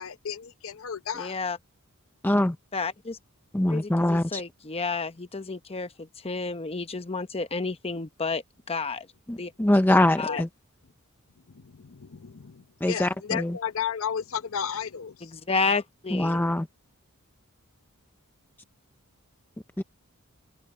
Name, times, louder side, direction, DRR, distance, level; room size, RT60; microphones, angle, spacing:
voice 1, 0.0-1.4 10.3-10.4 11.5-15.3, left 7 dB, 65° left, 0.8 m, -33 dB
voice 2, 1.1-1.6 2.7-3.2 3.7-8.4 8.7-9.1 9.3-9.5 10.2-10.4 15.2-16.4, left 4 dB, 25° left, 0.9 m, -31 dB
voice 3, 2.2-2.6 3.5-4.4 9.3-10.5 12.8-13.6 16.1-16.7 19.8-19.9, left 1 dB, 10° left, 0.5 m, -23 dB
head